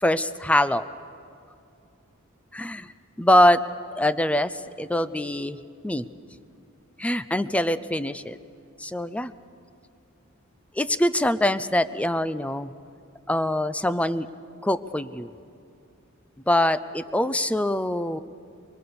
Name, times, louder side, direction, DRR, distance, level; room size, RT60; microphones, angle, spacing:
voice 1, 0.0-0.8 2.5-2.9 3.2-3.6 3.9-5.6 5.8-6.0 7.0-8.4 8.8-9.3 10.8-12.7 13.3-14.3 14.6-15.3 16.5-18.2, left 1 dB, 5° left, 14 dB, 0.5 m, -23 dB
24.0 x 23.0 x 7.0 m, 2.6 s
head